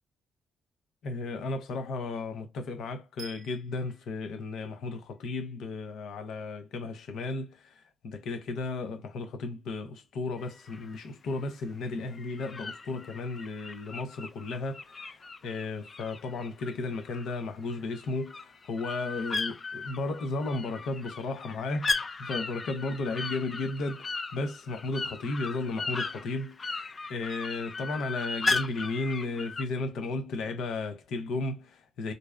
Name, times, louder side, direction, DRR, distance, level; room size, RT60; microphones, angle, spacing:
voice 1, 1.0-32.1, left 3 dB, 75° left, 0.6 m, -34 dB
sound 1, 3.2-5.3, right 4 dB, 50° right, 0.5 m, -50 dB
sound 2, 10.4-11.1 12.1-17.4 17.7-29.6, left 3 dB, 40° left, 0.4 m, -36 dB
2.6 x 2.1 x 2.3 m
supercardioid pair, 60°, 0 cm